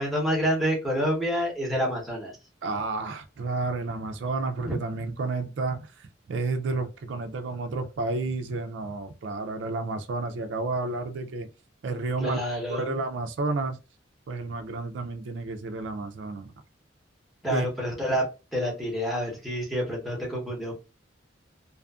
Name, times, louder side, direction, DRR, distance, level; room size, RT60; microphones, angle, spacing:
voice 1, 0.0-2.4 4.6-4.8 12.2-12.9 17.4-18.2 18.5-20.7, equal, ahead, 0.9 m, -28 dB
voice 2, 2.6-11.5 11.8-12.4 12.7-13.8 14.3-16.5 17.5-17.7, right 3 dB, 65° right, 0.4 m, -31 dB
2.5 x 2.4 x 2.3 m
head